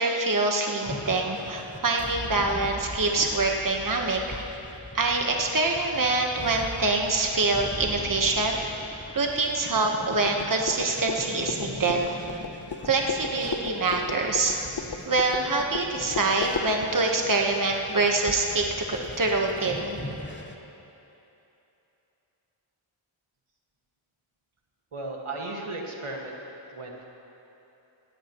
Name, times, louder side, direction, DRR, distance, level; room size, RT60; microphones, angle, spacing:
voice 1, 0.0-4.4 4.9-8.6 9.1-12.2 12.8-14.6 15.1-20.0, right 3 dB, 40° right, 1 dB, 1.3 m, -25 dB
sound 1, 0.9-20.6, left 2 dB, 20° left, 1.2 m, -41 dB
sound 2, 10.2-16.7, left 5 dB, 50° left, 0.9 m, -36 dB
voice 2, 24.9-26.4 26.7-27.1, right 2 dB, 80° right, -1 dB, 1.8 m, -35 dB
20.0 x 16.5 x 3.1 m, 3.0 s
wide cardioid pair, 50°, 49 cm